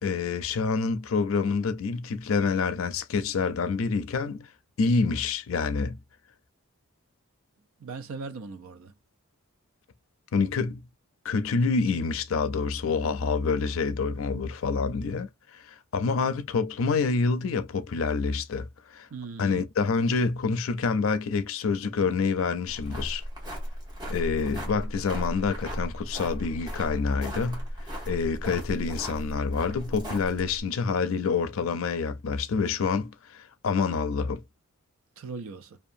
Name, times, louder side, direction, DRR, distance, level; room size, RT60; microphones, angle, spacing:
voice 1, 0.0-4.5 4.8-6.0 10.3-10.8 11.2-18.7 18.9-19.1 19.4-23.2 24.1-27.7 28.1-34.4, left 4 dB, 70° left, 0.4 m, -27 dB
voice 2, 7.8-8.9 19.1-19.7 35.2-35.8, right 4 dB, 75° right, 0.5 m, -39 dB
sound 1, 22.7-30.6, equal, 20° right, 0.9 m, -36 dB
2.7 x 2.3 x 2.5 m
head